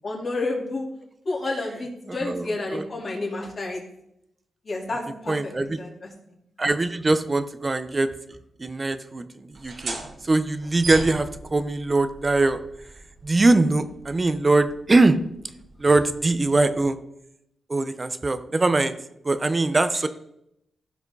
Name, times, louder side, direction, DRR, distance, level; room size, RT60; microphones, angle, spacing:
voice 1, 0.0-0.9 1.2-3.8 4.6-6.1, left 2 dB, 45° left, -3 dB, 4.1 m, -30 dB
voice 2, 2.1-2.8 5.3-5.8 6.6-8.1 8.6-12.6 13.2-15.2 15.8-17.0 17.7-19.0 19.2-20.1, right 2 dB, 30° right, 11 dB, 0.9 m, -22 dB
sound 1, 9.5-16.8, right 2 dB, 65° right, 3.1 m, -40 dB
15.5 x 5.9 x 4.1 m, 0.79 s
cardioid pair, 70°, 0 cm